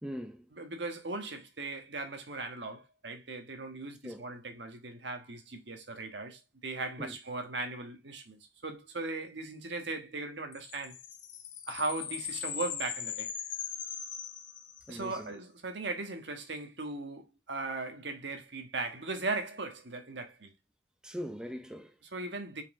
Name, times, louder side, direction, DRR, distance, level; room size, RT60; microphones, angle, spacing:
voice 1, 0.0-0.5 4.0-4.2 7.0-7.2 14.9-15.3 21.0-21.9, equal, 5° right, 0.6 m, -41 dB
voice 2, 0.5-11.0 11.7-13.3 14.9-20.5 22.1-22.6, right 3 dB, 70° right, 1.4 m, -38 dB
sound 1, 10.5-15.1, left 8 dB, 85° left, 1.1 m, -40 dB
5.5 x 4.9 x 3.6 m
head